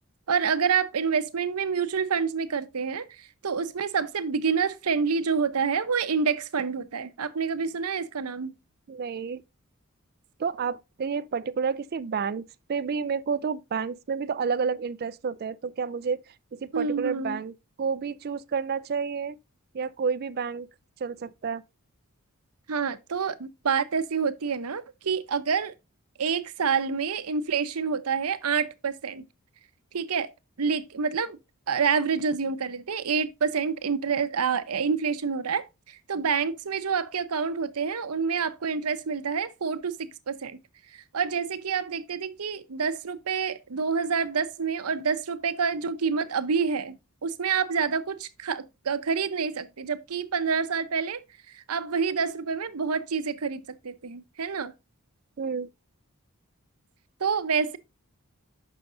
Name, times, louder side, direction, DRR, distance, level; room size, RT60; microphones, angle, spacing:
voice 1, 0.3-8.5 16.7-17.4 22.7-25.7 26.2-29.2 29.9-30.3 30.6-31.4 31.7-40.6 40.9-51.2 51.5-54.7 57.2-57.8, right 6 dB, 85° right, 0.7 m, -28 dB
voice 2, 8.9-9.4 10.4-12.4 12.7-16.2 16.6-19.4 19.7-20.7 21.0-21.6 55.4-55.7, right 5 dB, 45° right, 0.4 m, -30 dB
6.9 x 5.8 x 3.8 m
head